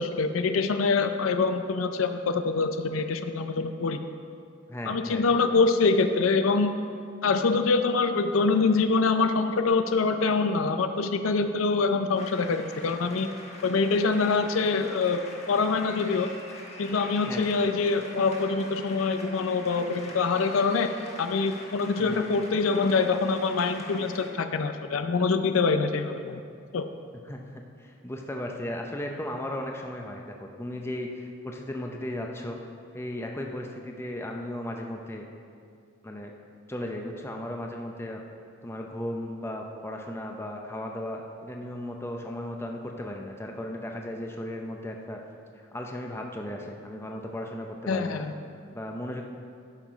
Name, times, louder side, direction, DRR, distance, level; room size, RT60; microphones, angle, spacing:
voice 1, 0.0-4.0 4.9-6.7 7.2-13.3 13.6-15.2 15.5-16.3 16.8-20.9 21.2-26.4 26.7-26.8 47.9-48.3, left 4 dB, 85° left, 8 dB, 0.5 m, -25 dB
voice 2, 4.7-5.2 17.3-17.5 22.0-22.3 27.2-32.6 32.9-35.2 36.0-36.3 36.7-38.2 38.6-45.2 45.5-48.3 48.7-49.3, left 1 dB, 10° left, 1 dB, 0.6 m, -36 dB
sound 1, 12.2-24.3, left 2 dB, 30° left, 1.3 m, -44 dB
11.5 x 5.9 x 5.1 m, 2.3 s
head